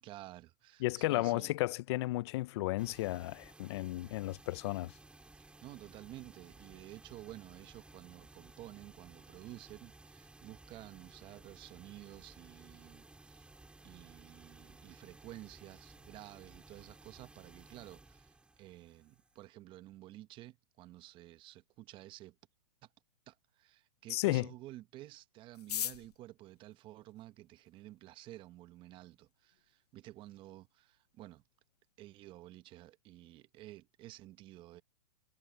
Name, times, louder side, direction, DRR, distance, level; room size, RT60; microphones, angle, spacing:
voice 1, 0.0-1.5 5.6-13.5 13.8-22.4 22.8-22.9 23.3-31.4 32.0-34.8, right 15 dB, 25° right, 0.9 m, -52 dB
voice 2, 0.8-4.9 24.1-24.5, left 18 dB, 45° left, 0.5 m, -33 dB
sound 1, 2.8-19.5, right 2 dB, 5° right, 4.4 m, -58 dB
sound 2, 25.5-27.8 28.6-28.7 28.9-29.0 29.3-29.7 30.1-30.2 30.3-30.8 31.1-31.3 31.6-31.9, left 10 dB, 80° left, 0.9 m, -41 dB
hypercardioid pair, 145°, 20 cm